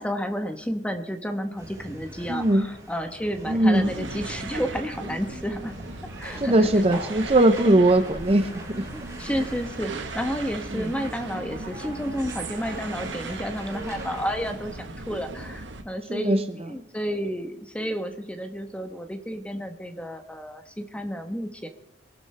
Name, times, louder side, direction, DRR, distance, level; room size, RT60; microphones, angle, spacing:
voice 1, 0.0-5.8 6.2-6.8 7.6-7.8 8.9-21.7, equal, 5° left, 7 dB, 1.1 m, -31 dB
sound 1, 1.6-14.5, right 1 dB, 15° right, 6.5 m, -42 dB
voice 2, 2.3-2.6 3.5-3.9 6.4-8.5 10.7-10.8 16.1-16.4, right 1 dB, 30° right, 9 dB, 0.7 m, -19 dB
sound 2, 3.7-15.8, right 2 dB, 80° right, 1.3 m, -38 dB
22.0 x 12.0 x 3.4 m, 0.89 s
head